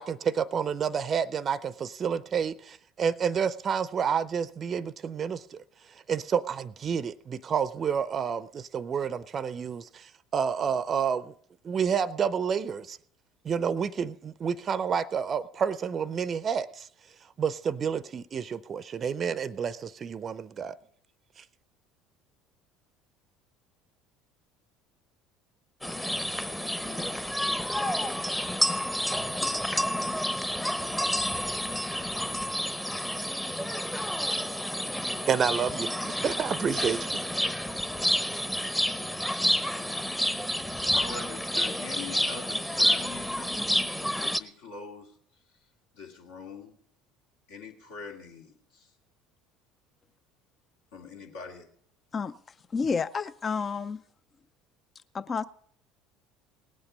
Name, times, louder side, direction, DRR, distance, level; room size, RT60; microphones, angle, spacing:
voice 1, 0.0-5.6 5.9-11.3 11.6-13.0 13.4-16.9 17.4-20.8 21.4-21.5 35.3-37.2, right 7 dB, 40° right, 0.5 m, -29 dB
sound 1, 25.8-44.4, equal, 5° left, 0.8 m, -29 dB
voice 2, 40.9-45.1 45.9-46.7 47.5-48.9 50.9-51.7, left 4 dB, 70° left, 2.2 m, -43 dB
voice 3, 52.7-54.0 55.1-55.4, left 5 dB, 35° left, 0.4 m, -30 dB
18.5 x 8.6 x 5.4 m
hypercardioid pair, 65°, 0 cm